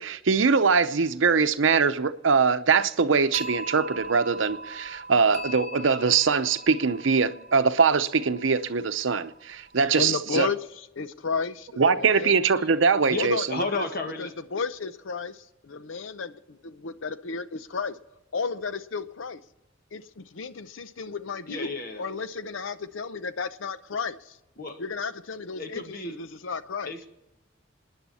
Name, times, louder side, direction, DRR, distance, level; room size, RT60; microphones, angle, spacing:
voice 1, 0.0-10.5 11.8-13.4, right 5 dB, 80° right, 0.7 m, -22 dB
sound 1, 3.3-9.9, right 1 dB, 35° right, 1.0 m, -41 dB
voice 2, 10.0-12.3 13.2-13.5 13.7-13.8 14.2-18.0 18.3-19.4 19.9-21.7 22.0-24.4 24.8-26.9, left 5 dB, 80° left, 0.7 m, -33 dB
voice 3, 13.1-14.3 21.5-22.1 24.6-24.8 25.6-26.1 26.8-27.1, left 3 dB, 50° left, 1.6 m, -33 dB
29.0 x 9.9 x 4.2 m
head